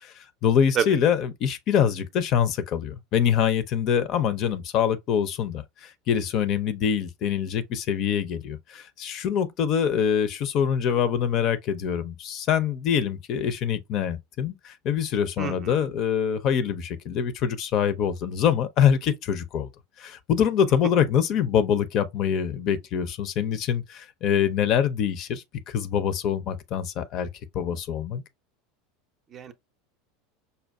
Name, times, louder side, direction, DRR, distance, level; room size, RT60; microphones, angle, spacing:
voice 1, 0.0-19.7 20.0-27.3 27.5-28.2, left 8 dB, 45° left, 0.5 m, -25 dB
voice 2, 15.4-15.8 29.3-29.5, right 7 dB, 35° right, 0.5 m, -28 dB
5.3 x 2.3 x 2.2 m
figure-of-eight pair, 75°, 0 cm